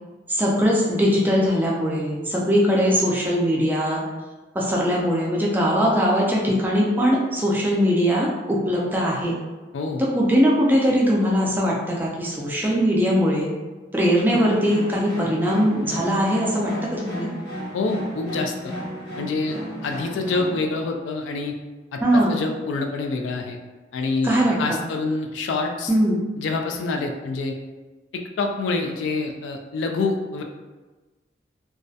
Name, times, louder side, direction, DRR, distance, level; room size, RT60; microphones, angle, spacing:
voice 1, 0.3-4.0 4.5-9.4 10.0-13.5 13.9-17.3 22.0-22.3 24.2-24.9 25.9-26.2, equal, 10° right, -4 dB, 0.3 m, -21 dB
sound 1, 14.2-20.6, equal, 65° left, 1.1 m, -35 dB
voice 2, 17.7-18.7 19.2-19.6 19.8-21.5 21.9-23.6 23.9-25.9 26.4-27.6 28.1-30.4, left 3 dB, 85° left, 3 dB, 0.3 m, -26 dB
2.3 x 2.1 x 2.6 m, 1.2 s
head